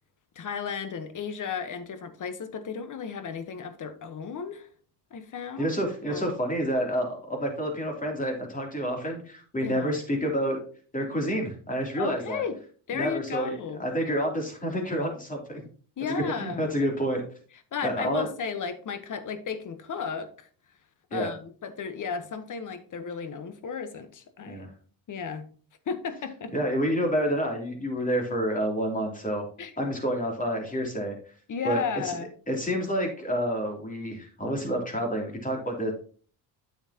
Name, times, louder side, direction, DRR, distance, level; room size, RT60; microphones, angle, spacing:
voice 1, 0.3-4.7 5.1-5.7 6.1-6.3 9.6-9.9 12.0-12.6 12.9-13.8 16.0-16.7 17.7-20.5 21.1-24.6 25.1-25.5 25.9-26.5 29.6-29.7 31.5-32.3, left 6 dB, 40° left, 1.2 m, -34 dB
voice 2, 5.6-10.6 10.9-12.4 12.9-15.7 16.1-17.2 17.8-18.3 21.1-21.3 24.5-24.7 26.5-29.4 29.8-31.2 31.6-32.1 32.5-35.9, equal, 15° left, 3.1 m, -29 dB
8.9 x 7.3 x 2.9 m
supercardioid pair, 90°, 47 cm